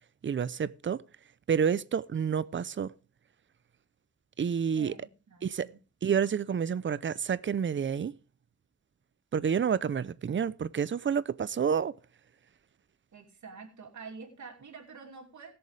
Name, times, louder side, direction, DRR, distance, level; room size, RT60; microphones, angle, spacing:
voice 1, 0.2-1.0 1.5-2.9 4.4-4.9 5.4-5.7 6.0-8.1 9.3-11.9, right 7 dB, 40° right, 0.5 m, -29 dB
voice 2, 4.8-5.8 13.1-15.5, right 5 dB, 75° right, 2.8 m, -47 dB
20.0 x 7.0 x 3.2 m
wide cardioid pair, 130°, 29 cm